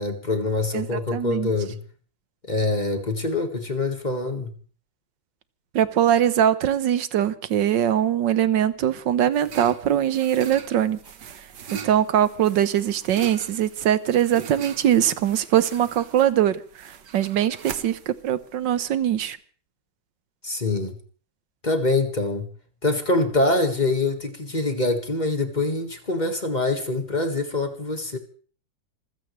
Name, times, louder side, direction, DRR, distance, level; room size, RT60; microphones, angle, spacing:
voice 1, 0.0-1.8 2.4-4.5 20.4-21.0 21.6-22.5 22.8-28.2, left 2 dB, 25° left, 6 dB, 1.8 m, -24 dB
voice 2, 0.7-1.5 5.7-11.0 11.8-19.4, right 10 dB, 85° right, 14 dB, 1.7 m, -22 dB
sound 1, 8.7-19.3, right 7 dB, 70° right, 1.9 m, -41 dB
26.5 x 15.5 x 3.3 m, 0.42 s
omnidirectional pair, 1.9 m